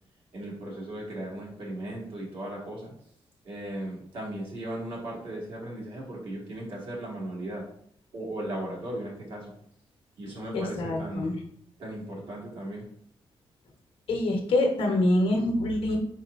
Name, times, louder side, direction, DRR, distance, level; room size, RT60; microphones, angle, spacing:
voice 1, 0.3-2.9 3.4-7.6 8.1-9.5 10.2-11.3 11.8-12.9, right 1 dB, 60° right, -4 dB, 1.8 m, -37 dB
voice 2, 10.5-11.3 14.1-16.0, left 1 dB, 65° left, 2 dB, 1.0 m, -25 dB
4.8 x 4.3 x 2.5 m, 0.64 s
wide cardioid pair, 170°, 10 cm